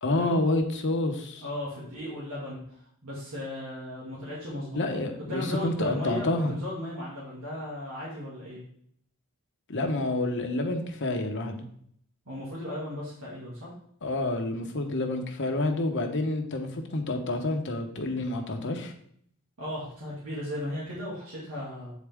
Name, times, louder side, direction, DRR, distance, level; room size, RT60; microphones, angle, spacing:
voice 1, 0.0-1.4 4.7-6.6 9.7-11.7 14.0-18.9, left 2 dB, 55° left, 4 dB, 1.0 m, -28 dB
voice 2, 1.4-4.8 5.3-8.6 12.3-13.7 19.6-21.9, left 1 dB, 80° right, -7 dB, 2.1 m, -36 dB
8.3 x 4.2 x 3.5 m, 0.65 s
head